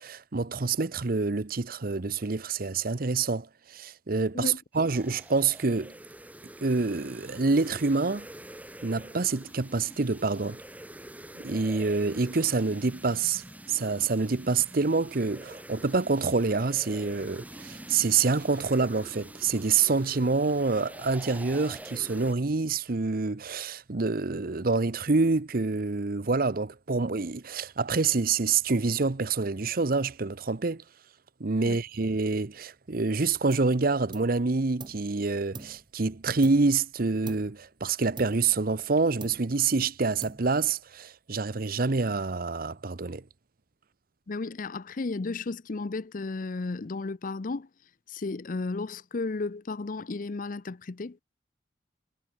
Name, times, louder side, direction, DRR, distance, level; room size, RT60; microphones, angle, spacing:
voice 1, 0.0-5.9 6.6-8.3 8.8-10.6 11.3-13.4 13.7-30.8 31.4-43.2, right 4 dB, 55° right, 0.8 m, -27 dB
sound 1, 4.7-22.3, right 1 dB, 10° right, 3.0 m, -46 dB
sound 2, 33.5-33.8 34.1-35.1 35.5-36.9 37.3-37.7 38.2-38.9 39.2-39.7 40.2-40.8, right 3 dB, 25° right, 0.9 m, -45 dB
voice 2, 44.3-47.7 48.1-51.2, left 3 dB, 50° left, 0.6 m, -33 dB
head